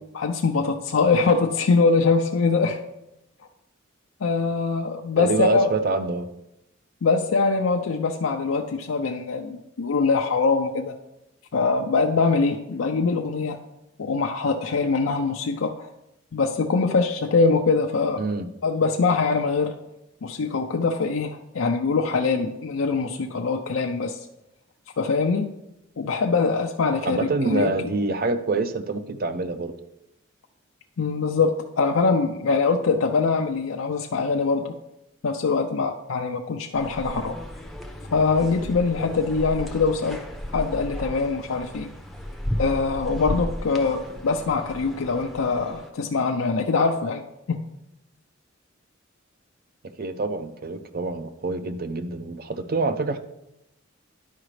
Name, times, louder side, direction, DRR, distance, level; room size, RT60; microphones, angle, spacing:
voice 1, 0.2-2.8 4.2-5.7 7.0-10.9 11.5-13.6 14.0-15.9 16.3-18.2 18.6-19.8 20.2-24.2 25.0-25.5 26.0-27.7 31.0-34.7 35.2-37.4 38.1-40.2 40.5-41.9 42.6-47.2 47.5-47.6, left 4 dB, 80° left, 3 dB, 0.5 m, -23 dB
voice 2, 5.2-6.3 18.2-18.5 27.0-29.7 50.0-53.2, right 3 dB, 45° right, 10 dB, 0.5 m, -26 dB
sound 1, 36.7-45.9, left 1 dB, ahead, 0.6 m, -34 dB
11.5 x 4.9 x 3.2 m, 0.87 s
head